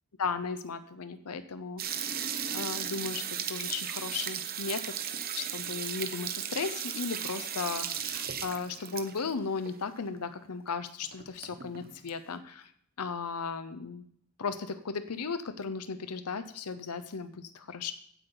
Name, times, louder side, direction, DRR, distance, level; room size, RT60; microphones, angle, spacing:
voice 1, 0.2-4.9 5.3-12.7 13.0-14.1 14.4-17.9, left 5 dB, 85° left, 11 dB, 0.8 m, -36 dB
sound 1, 1.8-9.3 9.6-9.7 10.0-10.1 10.7-10.8 11.0-12.1, right 8 dB, 45° right, 1.0 m, -36 dB
15.5 x 9.2 x 3.9 m, 0.66 s
head